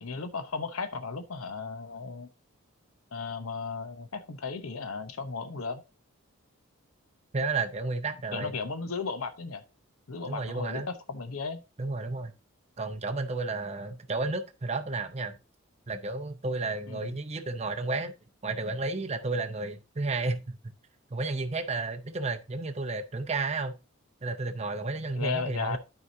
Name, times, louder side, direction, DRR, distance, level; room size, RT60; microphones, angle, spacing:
voice 1, 0.0-2.3 3.1-5.8 8.3-9.6 10.1-11.6 16.9-17.2 25.1-25.8, left 4 dB, 90° left, 0.8 m, -35 dB
voice 2, 7.3-8.5 10.3-10.9 11.8-12.3 12.8-15.4 15.9-18.1 18.4-20.4 21.1-23.8 24.2-25.8, right 3 dB, 30° right, 0.6 m, -32 dB
12.0 x 4.8 x 2.7 m
head